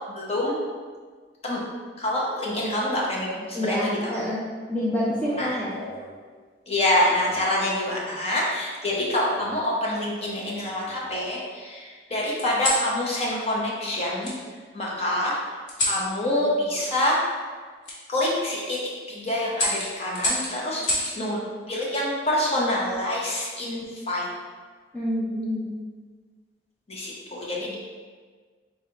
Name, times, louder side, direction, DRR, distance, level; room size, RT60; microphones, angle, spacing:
voice 1, 0.1-0.5 1.4-1.6 2.0-4.1 5.4-5.6 6.7-14.3 14.7-15.4 15.8-17.2 18.1-18.8 19.1-21.4 21.7-24.3 26.9-27.8, left 1 dB, 35° left, -4 dB, 0.9 m, -26 dB
voice 2, 3.5-4.4 4.7-5.7 24.9-25.7, left 1 dB, 5° left, -8 dB, 0.5 m, -27 dB
sound 1, 5.0-6.1 7.2-7.6 8.9-9.6 10.2-11.1 12.4-12.9 14.2-14.4 15.7-16.0 17.8-18.0 18.5-18.8 19.5-21.2 22.7-23.1, left 1 dB, 90° left, 1.2 m, -30 dB
4.0 x 3.9 x 2.9 m, 1.5 s
head